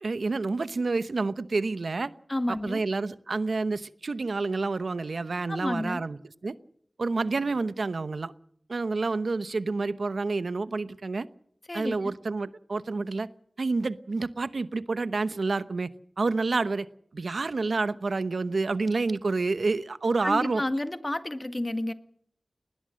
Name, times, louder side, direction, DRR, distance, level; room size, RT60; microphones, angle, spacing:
voice 1, 0.0-2.1 2.5-6.2 6.4-6.5 7.0-8.3 8.7-11.3 11.7-13.3 13.6-15.9 16.2-16.9 17.1-20.6, right 3 dB, 80° right, 14 dB, 0.9 m, -28 dB
voice 2, 2.3-2.8 5.5-6.0 11.7-12.1 20.2-21.9, left 1 dB, 25° left, 10 dB, 1.6 m, -30 dB
20.5 x 20.0 x 6.4 m, 0.65 s
wide cardioid pair, 80°, 0 cm